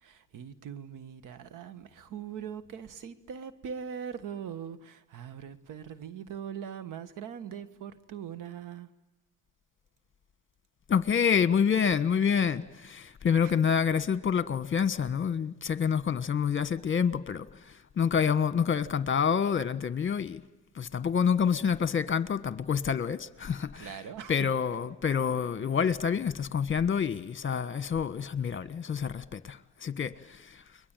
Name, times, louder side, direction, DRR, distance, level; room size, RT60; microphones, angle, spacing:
voice 1, 0.0-8.9 13.4-13.6 23.8-24.4, right 8 dB, 80° right, 1.6 m, -41 dB
voice 2, 10.9-20.4 20.7-24.0 24.3-30.6, left 7 dB, 40° left, 1.4 m, -28 dB
29.5 x 22.0 x 9.1 m
cardioid pair, 95°, 31 cm